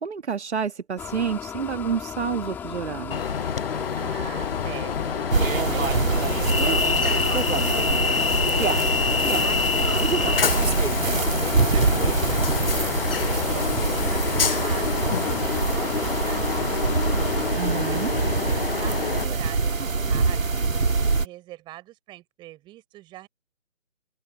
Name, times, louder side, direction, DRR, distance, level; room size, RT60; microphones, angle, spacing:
voice 1, 0.0-3.3 17.5-18.1, right 6 dB, 60° right, 1.6 m, -29 dB
sound 1, 1.0-17.5, left 8 dB, 5° left, 1.6 m, -36 dB
Train, 3.1-19.3, left 6 dB, 45° left, 0.7 m, -27 dB
voice 2, 4.0-5.3 5.7-17.1 17.7-18.3 18.6-23.3, right 16 dB, 10° right, 6.3 m, -43 dB
sound 2, 5.3-21.2, right 4 dB, 85° right, 2.4 m, -24 dB
open air
hypercardioid pair, 160°, 38 cm